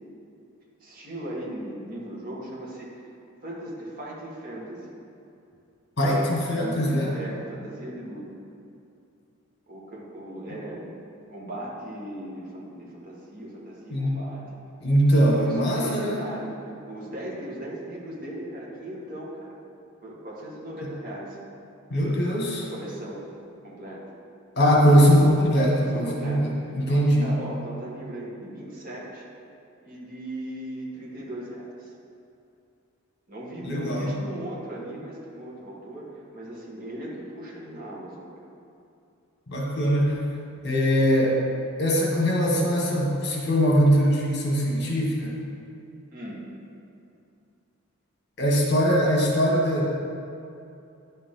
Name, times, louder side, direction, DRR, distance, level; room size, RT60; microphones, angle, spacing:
voice 1, 0.8-2.9 3.4-5.0 7.1-8.3 9.7-10.9 11.3-14.4 15.3-16.6 16.9-19.6 20.0-21.4 22.7-23.2 23.6-24.1 25.6-29.3 29.8-31.9 33.3-38.4 46.1-46.5, right 1 dB, 40° right, -4 dB, 1.8 m, -38 dB
voice 2, 6.0-7.1 13.9-14.2 14.8-16.2 21.9-22.7 24.6-26.4 26.7-27.3 33.6-34.1 39.5-40.2 40.6-41.4 41.8-45.4 48.4-49.9, equal, 50° left, -2 dB, 1.6 m, -21 dB
10.5 x 6.5 x 3.9 m, 2.7 s
head